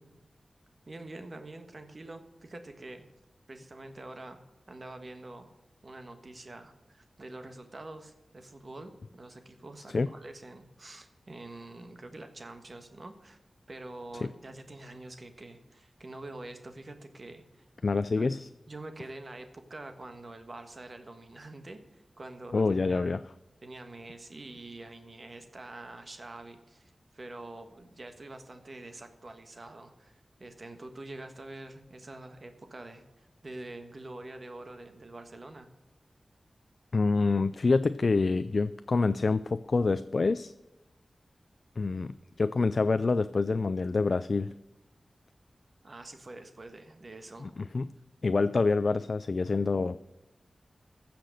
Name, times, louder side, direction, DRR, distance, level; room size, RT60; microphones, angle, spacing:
voice 1, 0.9-3.1 3.5-4.4 4.7-5.5 5.8-13.4 13.7-17.6 18.1-18.3 18.7-23.1 23.6-35.7 45.8-47.5, right 2 dB, 50° right, 7 dB, 1.4 m, -46 dB
voice 2, 17.8-18.5 22.5-23.2 36.9-40.5 41.8-44.5 47.4-47.9 48.2-50.0, left 3 dB, 60° left, 13 dB, 0.3 m, -27 dB
15.0 x 5.9 x 6.4 m, 1.0 s
cardioid pair, 50°, 0 cm